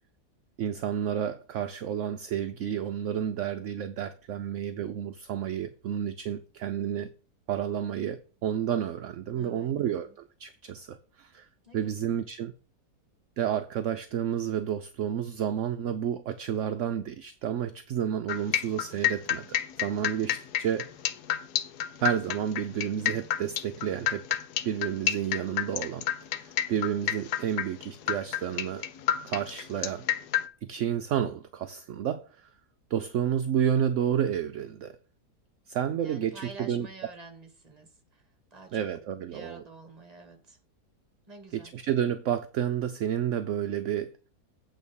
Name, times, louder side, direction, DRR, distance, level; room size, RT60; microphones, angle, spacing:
voice 1, 0.6-7.1 7.5-10.1 10.4-11.5 11.7-12.5 13.4-20.9 22.0-24.2 24.6-26.0 26.3-28.8 29.2-30.0 30.6-32.5 32.9-35.0 35.7-36.9 38.7-39.6 41.5-44.1, right 9 dB, 65° right, 0.8 m, -30 dB
voice 2, 9.3-10.1 11.6-12.2 29.8-30.1 36.0-38.2 38.5-38.9 39.3-40.6 41.3-41.7, right 3 dB, 25° right, 1.5 m, -48 dB
sound 1, 18.3-30.5, left 11 dB, 80° left, 1.3 m, -29 dB
8.5 x 3.9 x 6.9 m
omnidirectional pair, 1.7 m